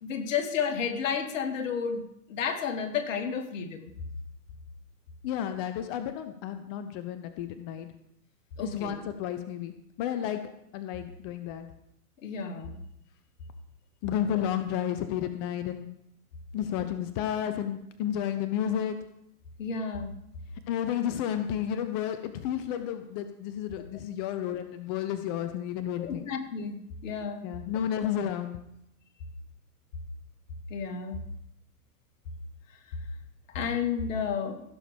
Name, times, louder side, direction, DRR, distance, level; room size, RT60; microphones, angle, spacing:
voice 1, 0.0-2.0 2.3-3.9 8.6-8.9 12.2-12.8 19.6-20.1 26.0-26.8 27.0-27.4 30.7-31.2 33.5-34.6, left 6 dB, 55° left, 5 dB, 2.2 m, -31 dB
voice 2, 5.2-7.9 8.6-10.4 10.7-11.7 14.0-15.9 16.5-19.0 20.7-26.3 27.4-28.6, left 10 dB, 20° left, 9 dB, 0.4 m, -32 dB
15.5 x 6.8 x 5.1 m, 0.76 s
figure-of-eight pair, 110°, 46 cm